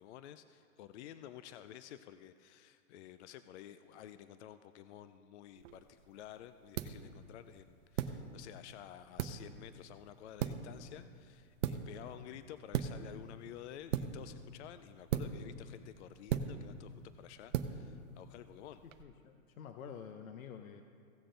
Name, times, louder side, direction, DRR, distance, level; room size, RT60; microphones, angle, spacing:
voice 1, 0.0-18.8, left 11 dB, 55° left, 11 dB, 0.5 m, -52 dB
sound 1, 5.6-19.0, right 8 dB, 65° right, 0.8 m, -41 dB
voice 2, 15.1-15.6 19.0-20.8, left 7 dB, 75° left, 7 dB, 0.8 m, -49 dB
16.5 x 6.7 x 3.8 m, 2.2 s
hypercardioid pair, 135°, 41 cm